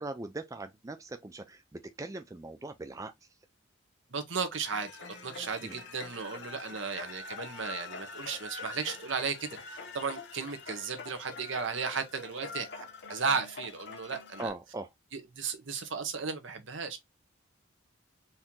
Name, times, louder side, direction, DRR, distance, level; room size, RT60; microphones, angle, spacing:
voice 1, 0.0-3.1 5.6-5.7 14.4-14.9, right 2 dB, 15° right, 0.4 m, -40 dB
voice 2, 4.1-4.9 5.2-9.6 9.9-14.5 15.1-17.0, right 5 dB, 65° right, 1.0 m, -35 dB
sound 1, 4.6-14.5, left 4 dB, 55° left, 1.0 m, -45 dB
4.4 x 2.9 x 3.6 m
head